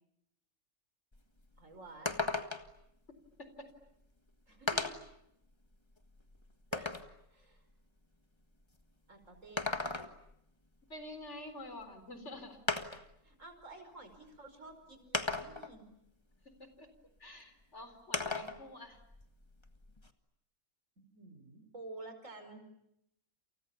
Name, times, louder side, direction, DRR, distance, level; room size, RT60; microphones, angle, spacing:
sound 1, 1.1-1.2 1.5-1.6 2.1-2.8 3.9-4.0 4.7-5.1 5.7-7.1 9.4-10.3 11.8-11.9 12.7-13.1 14.1-14.2 15.1-15.8 18.1-18.6 19.0-20.1, left 3 dB, 20° left, 1.6 m, -36 dB
voice 1, 1.6-2.2 4.5-5.0 6.7-6.9 7.3-7.6 9.1-9.7 13.2-15.9 21.0-22.6, right 2 dB, 75° right, 7 dB, 5.4 m, -51 dB
voice 2, 10.9-12.6 16.6-16.9 17.2-19.0, left 1 dB, 60° left, 9 dB, 4.4 m, -48 dB
29.0 x 29.0 x 7.0 m, 0.78 s
omnidirectional pair, 1.3 m